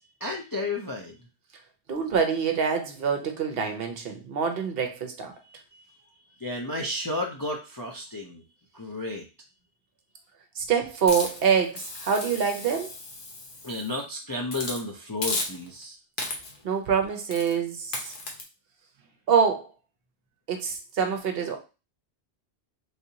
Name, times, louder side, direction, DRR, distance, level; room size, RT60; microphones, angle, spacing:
voice 1, 0.2-1.2 5.5-5.8 6.4-8.4 8.7-9.3 13.6-16.0, left 2 dB, 30° left, -1 dB, 0.4 m, -32 dB
voice 2, 1.9-5.3 10.6-12.9 16.6-18.1 19.3-19.7 20.5-21.6, right 6 dB, 65° right, 5 dB, 0.8 m, -25 dB
Hiss, 11.1-14.0 14.5-14.8 15.2-15.8 16.2-16.6 17.3-17.6 17.9-18.4, left 2 dB, 55° left, 0.9 m, -34 dB
3.4 x 2.8 x 2.7 m, 0.30 s
omnidirectional pair, 1.1 m